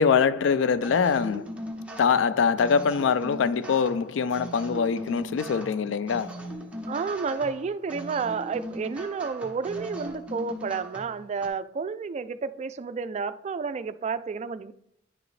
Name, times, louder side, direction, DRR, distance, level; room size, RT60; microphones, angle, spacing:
voice 1, 0.0-1.5 2.0-6.3, left 6 dB, 75° left, 0.3 m, -23 dB
sound 1, 0.8-11.5, equal, 5° right, 0.8 m, -39 dB
voice 2, 6.9-14.7, right 5 dB, 35° right, 0.3 m, -31 dB
9.7 x 4.9 x 3.2 m
head